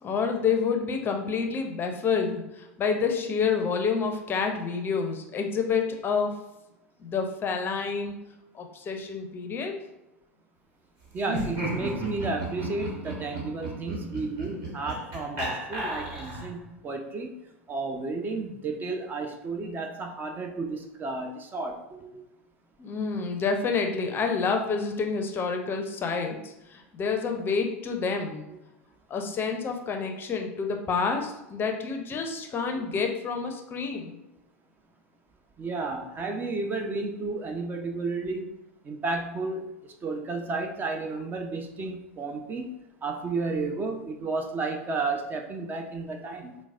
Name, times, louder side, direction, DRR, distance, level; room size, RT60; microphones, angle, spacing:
voice 1, 0.0-6.4 7.0-8.1 8.5-9.8 22.8-28.5 29.1-34.2, left 5 dB, 30° left, 4 dB, 0.5 m, -28 dB
voice 2, 11.1-17.4 17.7-22.1 35.6-38.5 38.8-42.8 43.0-46.6, right 3 dB, 25° right, 4 dB, 0.4 m, -32 dB
Laughter, 11.2-16.6, right 1 dB, 55° right, 1.5 m, -34 dB
4.5 x 2.1 x 2.4 m, 0.91 s
hypercardioid pair, 90°, 8 cm